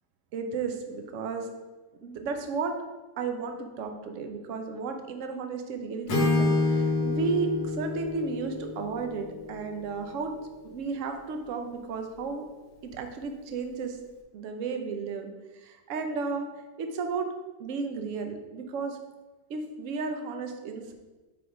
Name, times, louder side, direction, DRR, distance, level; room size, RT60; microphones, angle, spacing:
voice 1, 0.3-1.5 2.0-2.7 3.2-10.3 10.6-12.5 12.8-14.0 14.3-15.3 15.6-16.5 16.8-17.3 17.6-19.0 19.5-20.9, right 4 dB, 65° right, 5 dB, 0.8 m, -33 dB
Acoustic guitar / Strum, 6.1-10.0, left 3 dB, 85° left, 1.8 m, -28 dB
5.0 x 4.7 x 4.9 m, 1.2 s
omnidirectional pair, 2.0 m